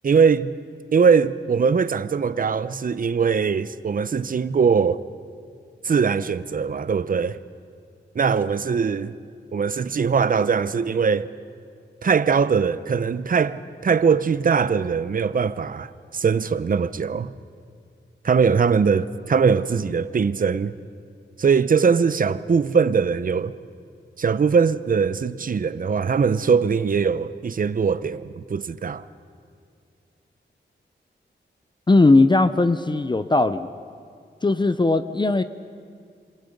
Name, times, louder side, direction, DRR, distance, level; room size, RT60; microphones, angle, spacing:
voice 1, 0.0-0.5 0.9-5.0 5.8-7.4 8.1-9.1 9.5-11.3 12.0-17.3 18.2-20.7 21.4-23.5 24.2-29.0, right 6 dB, 45° right, 0.6 m, -21 dB
voice 2, 31.9-33.7 34.4-35.4, left 2 dB, 25° left, 0.6 m, -18 dB
27.5 x 25.5 x 5.3 m
wide cardioid pair, 120°, 19 cm